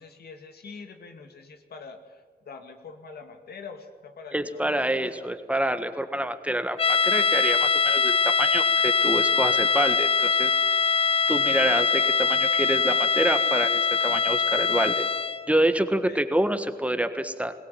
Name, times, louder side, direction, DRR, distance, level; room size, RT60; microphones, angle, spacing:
voice 1, 0.0-5.3 16.0-16.2, left 4 dB, 85° left, 6 dB, 2.3 m, -44 dB
voice 2, 4.3-10.5 11.3-15.1 15.5-17.5, right 1 dB, 10° right, 9 dB, 1.5 m, -27 dB
sound 1, 6.8-15.5, left 5 dB, 35° left, 0.5 m, -23 dB
21.5 x 18.0 x 9.2 m, 1.5 s
cardioid pair, 80°, 16 cm